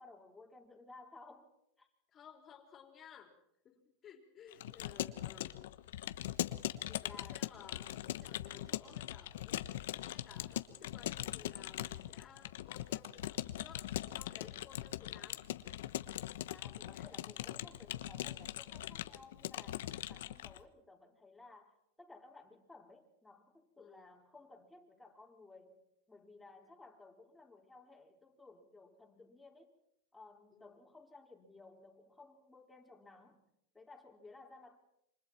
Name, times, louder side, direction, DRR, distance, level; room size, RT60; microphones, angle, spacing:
voice 1, 0.0-1.5 1.8-1.9 6.8-7.6 16.5-29.7 30.1-33.4 33.7-34.8, left 3 dB, 5° left, 0 dB, 4.6 m, -58 dB
voice 2, 2.1-3.4 3.6-5.7 7.0-13.9 14.1-15.4 16.9-17.1 23.8-24.1 30.5-30.7, left 8 dB, 30° left, 4 dB, 4.0 m, -57 dB
Keyboard (musical) / Computer keyboard, 4.5-20.6, left 13 dB, 80° left, 1.2 m, -41 dB
28.0 x 25.5 x 4.5 m, 0.75 s
supercardioid pair, 130°, 0 cm